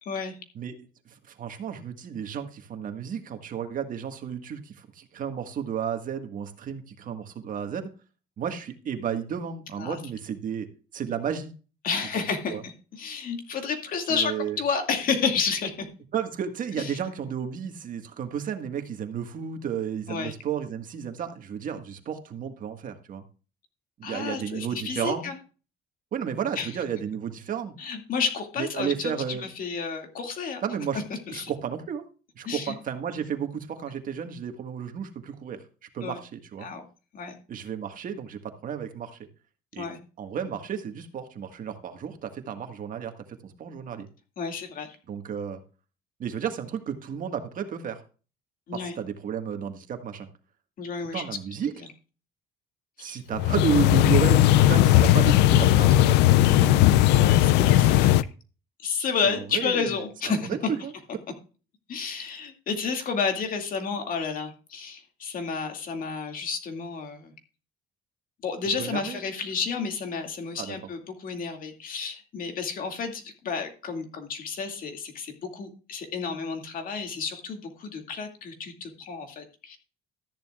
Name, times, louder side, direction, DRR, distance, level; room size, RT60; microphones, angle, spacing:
voice 1, 0.0-0.4 9.8-10.0 11.8-15.9 16.8-16.9 20.1-20.3 24.0-25.4 26.6-26.7 27.8-30.6 30.9-31.5 32.5-32.7 36.0-36.2 36.6-36.9 37.1-37.4 39.8-40.0 44.4-45.0 48.7-49.0 50.8-51.2 51.8-51.9 53.0-53.2 57.1-58.2 58.8-60.6 61.9-67.3 68.4-79.8, left 5 dB, 55° left, 5 dB, 2.3 m, -31 dB
voice 2, 0.5-7.9 8.4-11.5 12.1-12.2 12.5-12.6 14.1-14.6 16.1-23.2 24.0-25.3 26.1-27.7 28.6-29.4 30.6-31.0 31.3-32.0 32.3-35.6 35.9-36.7 37.5-39.2 39.7-39.9 40.2-44.1 45.1-45.6 46.2-48.0 48.7-50.3 51.1-51.7 53.0-56.9 59.2-60.0 60.3-60.9 68.8-69.2 70.6-70.8, right 8 dB, 55° right, 6 dB, 1.7 m, -32 dB
sound 1, 53.3-58.2, left 14 dB, 90° left, 0.5 m, -18 dB
13.5 x 10.5 x 2.4 m, 0.35 s
cardioid pair, 110°, 17 cm